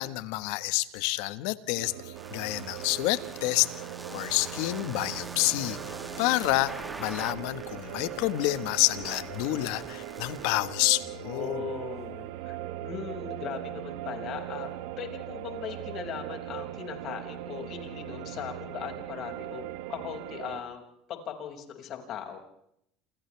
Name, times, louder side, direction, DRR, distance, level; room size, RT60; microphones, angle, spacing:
voice 1, 0.0-1.9 2.3-3.7 4.1-5.8 6.2-11.6, left 18 dB, 75° left, 13 dB, 1.5 m, -28 dB
sound 1, 1.7-20.6, right 13 dB, 80° right, 1.8 m, -40 dB
sound 2, 2.2-10.5, right 2 dB, 15° right, 2.7 m, -44 dB
sound 3, 7.8-8.2 11.2-12.7, right 5 dB, 35° right, 7.4 m, -49 dB
voice 2, 11.2-12.6 12.8-14.7 15.0-19.6 19.9-20.8 21.1-22.4, left 8 dB, 55° left, 4 dB, 6.2 m, -39 dB
28.5 x 28.0 x 3.5 m, 0.72 s
supercardioid pair, 95°, 0 cm